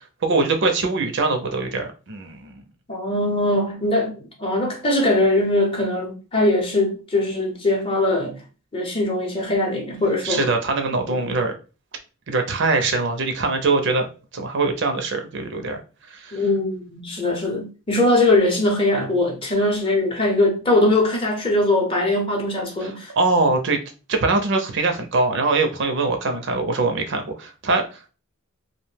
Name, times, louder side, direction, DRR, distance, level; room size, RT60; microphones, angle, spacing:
voice 1, 0.2-2.6 10.2-11.5 12.3-14.1 14.3-15.8 16.1-16.4 22.8-23.8 24.1-28.1, right 3 dB, 55° right, 0.5 m, -22 dB
voice 2, 2.9-8.4 8.7-10.5 11.0-11.2 16.3-23.1, left 2 dB, 25° left, 0.6 m, -21 dB
2.6 x 2.1 x 3.1 m
head